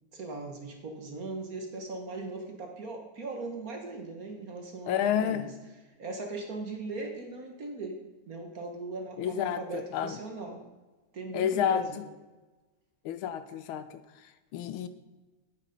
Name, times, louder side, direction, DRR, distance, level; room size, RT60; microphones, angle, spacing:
voice 1, 0.1-5.5 6.0-8.0 8.3-10.6 11.1-12.0, right 3 dB, 45° right, 3 dB, 1.5 m, -39 dB
voice 2, 4.9-5.5 9.2-10.2 11.3-11.9 13.0-14.9, left 9 dB, 75° left, 12 dB, 1.4 m, -30 dB
9.2 x 8.7 x 5.2 m, 1.2 s
omnidirectional pair, 2.4 m